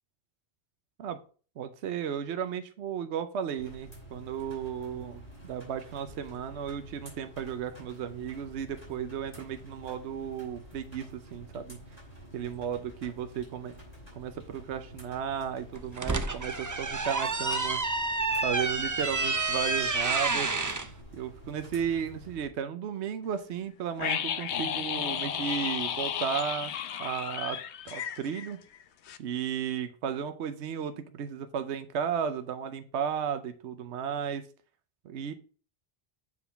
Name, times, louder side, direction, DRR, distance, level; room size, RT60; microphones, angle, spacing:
voice 1, 1.6-11.8 12.3-13.7 14.2-17.8 18.4-20.5 21.1-26.7 27.0-27.6 27.9-28.6 29.2-34.5 35.0-35.3, right 8 dB, 80° right, 9 dB, 1.0 m, -34 dB
sound 1, 3.6-22.5, equal, 50° left, 4.2 m, -49 dB
sound 2, 15.7-20.9, right 3 dB, 25° right, 0.4 m, -29 dB
sound 3, 24.0-28.8 29.1-29.2, left 9 dB, 80° left, 0.9 m, -33 dB
7.6 x 4.0 x 5.7 m, 0.39 s
omnidirectional pair, 1.1 m